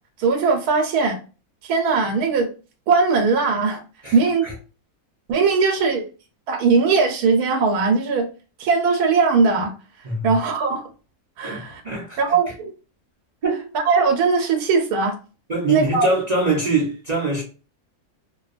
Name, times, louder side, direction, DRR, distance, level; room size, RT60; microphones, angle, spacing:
voice 1, 0.2-1.2 1.6-2.5 2.9-3.8 4.1-4.4 5.3-6.1 6.5-8.3 8.6-9.7 10.2-10.8 11.4-11.8 12.2-12.7 13.9-15.2 15.7-16.1, right 4 dB, 80° right, 1.1 m, -19 dB
voice 2, 4.0-4.5 10.0-10.4 11.4-12.2 13.4-13.7 15.5-17.4, right 3 dB, 50° right, 0.5 m, -23 dB
2.6 x 2.1 x 2.4 m
omnidirectional pair, 1.6 m